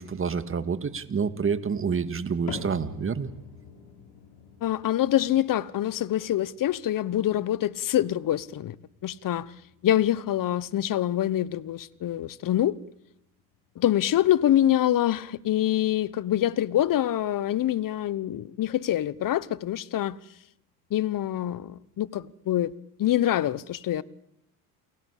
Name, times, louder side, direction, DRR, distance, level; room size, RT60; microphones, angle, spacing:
voice 1, 0.0-3.3, right 6 dB, 25° right, 2.0 m, -28 dB
sound 1, 2.5-18.8 19.1-19.6 20.2-20.3 21.1-21.2, left 6 dB, 65° left, 5.1 m, -48 dB
voice 2, 4.6-8.8 9.0-9.5 9.8-12.8 13.8-20.2 20.9-22.7 23.0-24.0, left 12 dB, 45° left, 1.1 m, -25 dB
29.0 x 20.0 x 8.4 m
supercardioid pair, 80°, 46 cm